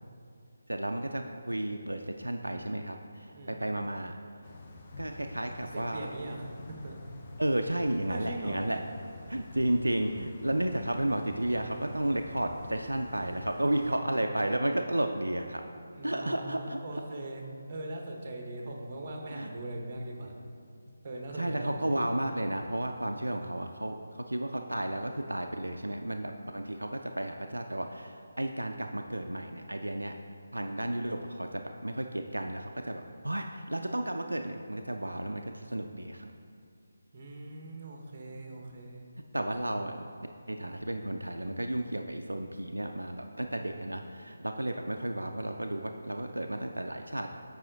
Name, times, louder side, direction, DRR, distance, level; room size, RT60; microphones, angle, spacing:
voice 1, 0.7-4.2 5.0-6.1 7.4-8.8 9.3-15.7 16.0-16.8 19.3-19.5 21.3-30.1 30.5-36.3 39.3-40.0 40.5-47.3, right 1 dB, 80° right, 4 dB, 0.4 m, -33 dB
sound 1, 4.4-14.0, left 2 dB, 25° left, 0.6 m, -48 dB
voice 2, 5.6-7.0 8.1-8.6 15.9-17.4 17.7-20.3 21.0-22.0 37.1-39.1, right 1 dB, 35° right, 1 dB, 0.9 m, -40 dB
7.6 x 4.8 x 3.8 m, 2.4 s
figure-of-eight pair, 150°, 0 cm